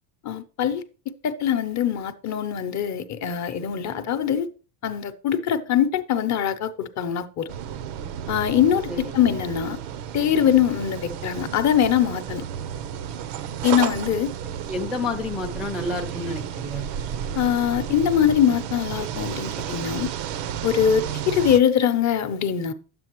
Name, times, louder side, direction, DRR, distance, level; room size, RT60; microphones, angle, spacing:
voice 1, 0.2-0.8 1.2-4.5 4.8-7.5 8.3-9.8 10.1-12.4 13.6-14.3 17.3-20.1 20.6-22.7, left 9 dB, 35° left, 0.7 m, -22 dB
sound 1, 7.5-21.6, right 9 dB, 75° right, 0.8 m, -32 dB
voice 2, 14.7-16.9, left 2 dB, ahead, 0.4 m, -29 dB
9.8 x 7.6 x 3.0 m
cardioid pair, 140°, 48 cm